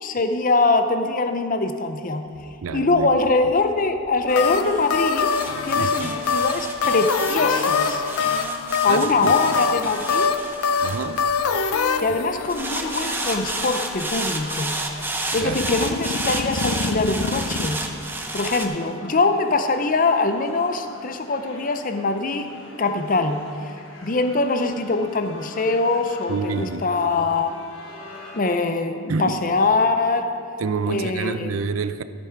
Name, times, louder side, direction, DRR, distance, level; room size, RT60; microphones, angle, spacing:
voice 1, 0.0-2.2 2.7-5.3 5.6-8.0 8.8-10.3 12.0-14.7 15.3-17.8 18.3-22.5 22.8-23.4 24.0-27.5 28.3-30.3 30.8-31.6, left 3 dB, 40° left, 8 dB, 0.6 m, -23 dB
sound 1, 2.4-11.8 12.5-18.7, right 2 dB, 10° right, 0.6 m, -31 dB
voice 2, 2.6-3.1 5.8-6.2 8.9-9.3 10.8-11.2 15.4-15.6 26.3-26.8 29.1-29.4 30.6-32.0, right 5 dB, 70° right, 12 dB, 0.4 m, -27 dB
sound 2, 4.3-14.2 15.3-17.7, left 5 dB, 85° left, 0.6 m, -25 dB
sound 3, 9.2-28.4, left 2 dB, 60° left, 1.5 m, -44 dB
14.5 x 6.8 x 4.6 m, 2.4 s
head